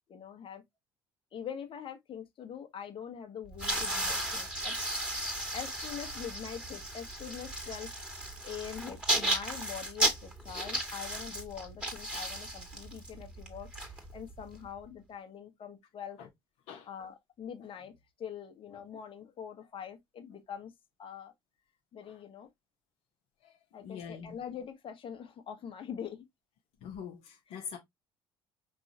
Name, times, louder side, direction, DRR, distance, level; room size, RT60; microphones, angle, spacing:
voice 1, 0.1-0.6 1.3-5.0 5.5-7.9 8.4-16.2 16.9-20.7 21.0-21.3 21.9-22.5 23.7-26.2 27.5-27.6, left 8 dB, 45° left, 1.4 m, -44 dB
sound 1, 3.5-14.5, right 1 dB, 10° right, 2.2 m, -34 dB
voice 2, 23.8-24.4 26.8-27.8, left 7 dB, 65° left, 1.1 m, -44 dB
5.2 x 3.3 x 2.9 m
hypercardioid pair, 60°, 12 cm